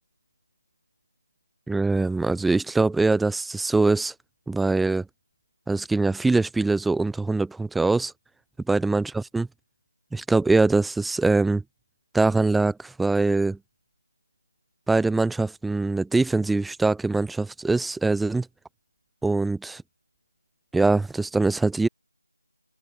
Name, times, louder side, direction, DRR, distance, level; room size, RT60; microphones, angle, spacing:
voice 1, 1.7-4.1 4.5-5.0 5.7-8.1 8.7-9.5 10.1-11.6 12.1-13.6 14.9-18.5 19.2-19.8 20.7-21.9, right 3 dB, ahead, 3.3 m, -23 dB
open air
figure-of-eight pair, 170°, 0 cm